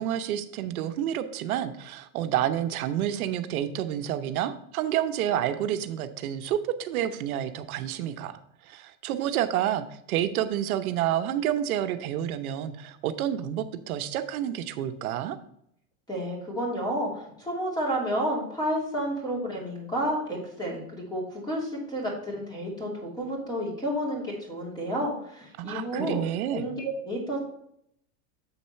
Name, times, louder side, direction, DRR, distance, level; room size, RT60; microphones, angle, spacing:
voice 1, 0.0-15.4 25.6-26.7, right 11 dB, 80° right, 9 dB, 0.8 m, -29 dB
voice 2, 16.1-26.2 26.5-27.4, equal, 10° left, -2 dB, 2.7 m, -31 dB
7.3 x 4.2 x 5.6 m, 0.72 s
supercardioid pair, 135°, 43 cm